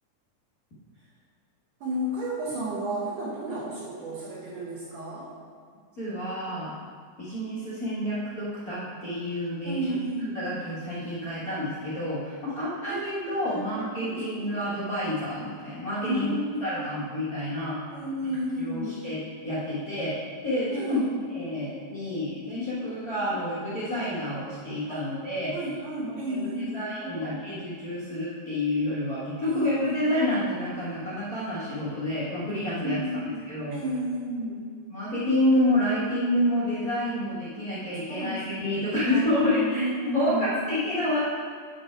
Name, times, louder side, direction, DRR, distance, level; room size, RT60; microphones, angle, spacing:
voice 1, 1.8-5.3 9.6-10.4 12.5-14.5 16.0-16.9 17.9-19.0 20.7-21.3 24.9-25.0 25.5-27.4 29.4-30.1 32.8-33.4 33.7-34.6 38.1-39.5 39.7-40.5, right 1 dB, 70° right, -7 dB, 2.5 m, -32 dB
voice 2, 6.0-6.7 7.2-9.8 10.3-16.3 16.6-17.8 18.6-20.2 20.4-21.0 21.3-25.5 26.3-26.5 26.7-33.2 33.5-33.8 34.9-39.8 40.1-41.2, left 1 dB, 50° left, -11 dB, 1.1 m, -29 dB
9.1 x 4.4 x 4.4 m, 2.2 s
omnidirectional pair, 3.9 m